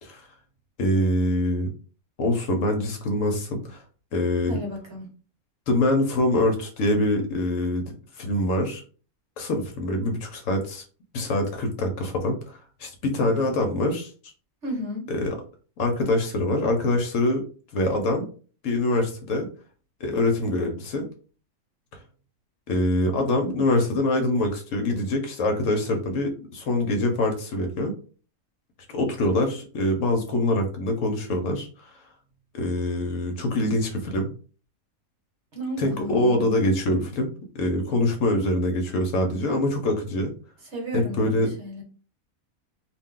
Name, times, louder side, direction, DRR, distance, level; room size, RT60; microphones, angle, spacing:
voice 1, 0.8-1.7 2.2-3.8 4.1-4.6 5.7-7.8 8.2-8.8 9.4-10.8 11.1-14.1 15.1-15.3 15.8-17.4 17.7-18.3 18.6-19.5 20.0-21.1 22.7-27.9 28.9-32.0 32.5-34.3 35.8-40.3 40.9-41.5, left 1 dB, 65° left, 4 dB, 1.0 m, -24 dB
voice 2, 4.5-5.0 14.6-15.0 35.5-36.4 40.7-41.8, equal, 55° right, 1 dB, 1.2 m, -33 dB
2.6 x 2.2 x 3.6 m, 0.39 s
omnidirectional pair, 1.5 m